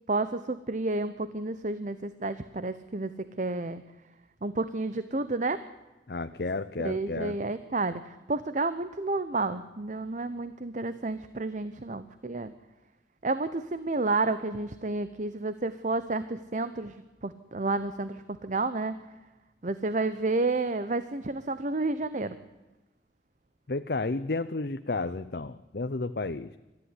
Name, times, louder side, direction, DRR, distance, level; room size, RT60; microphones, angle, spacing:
voice 1, 0.1-3.8 4.4-5.6 6.8-12.5 13.2-19.0 19.6-22.4, right 3 dB, 45° right, 12 dB, 0.9 m, -31 dB
voice 2, 6.1-7.4 23.7-26.5, left 3 dB, 60° left, 10 dB, 0.7 m, -32 dB
25.5 x 14.0 x 9.8 m, 1.1 s
head